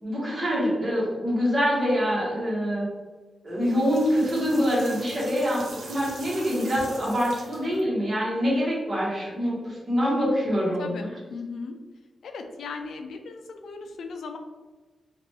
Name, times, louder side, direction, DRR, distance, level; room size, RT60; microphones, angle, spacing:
voice 1, 0.0-2.9 3.4-11.1, equal, 30° right, -6 dB, 1.2 m, -25 dB
sound 1, 3.5-7.8, right 2 dB, 80° right, 0.7 m, -42 dB
voice 2, 10.8-11.8 12.2-14.4, left 4 dB, 90° left, 5 dB, 0.4 m, -37 dB
2.9 x 2.5 x 3.1 m, 1.3 s
wide cardioid pair, 140°, 0 cm